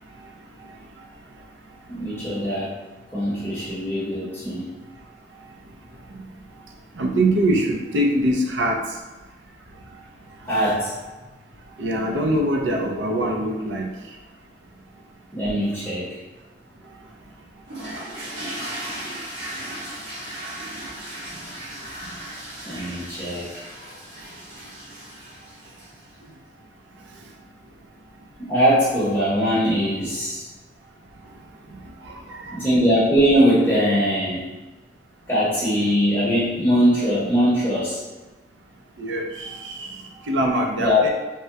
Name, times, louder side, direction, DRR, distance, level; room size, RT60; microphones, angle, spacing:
voice 1, 1.9-2.7 3.1-4.7 10.4-10.9 15.3-16.2 22.6-23.6 28.4-30.5 32.5-34.4 35.3-38.0 40.8-41.0, equal, 15° left, -10 dB, 0.7 m, -21 dB
voice 2, 7.0-8.8 11.8-13.9 39.0-39.5 39.8-39.9 40.3-41.1, right 1 dB, 85° right, 1 dB, 0.5 m, -22 dB
sound 1, 17.7-26.1, right 1 dB, 70° right, 1.2 m, -36 dB
3.4 x 2.1 x 2.7 m, 1.2 s
head